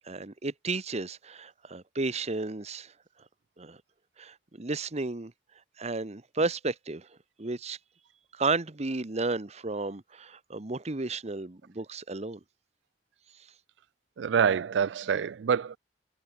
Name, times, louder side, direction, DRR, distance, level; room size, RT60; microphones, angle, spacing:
voice 1, 0.1-2.9 3.6-3.8 4.2-5.3 5.8-7.1 7.4-7.8 8.3-12.4, right 3 dB, 40° right, 1.1 m, -33 dB
voice 2, 14.2-15.8, right 7 dB, 85° right, 0.4 m, -26 dB
head